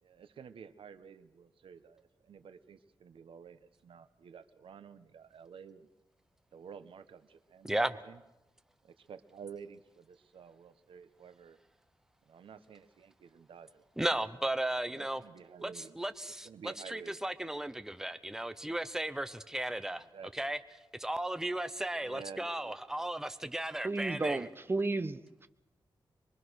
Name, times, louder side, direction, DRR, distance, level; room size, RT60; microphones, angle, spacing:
voice 1, 0.0-5.9 6.5-8.2 8.8-11.6 12.2-13.8 14.9-16.0 16.4-17.3 19.9-20.5 22.0-23.1, right 6 dB, 90° right, 1.2 m, -51 dB
voice 2, 7.6-7.9 14.0-15.2 15.6-20.0 20.3-20.6 21.0-24.5, right 1 dB, 5° right, 0.8 m, -35 dB
voice 3, 23.8-25.5, right 2 dB, 25° right, 1.1 m, -33 dB
24.5 x 22.5 x 6.4 m
wide cardioid pair, 105°, 9 cm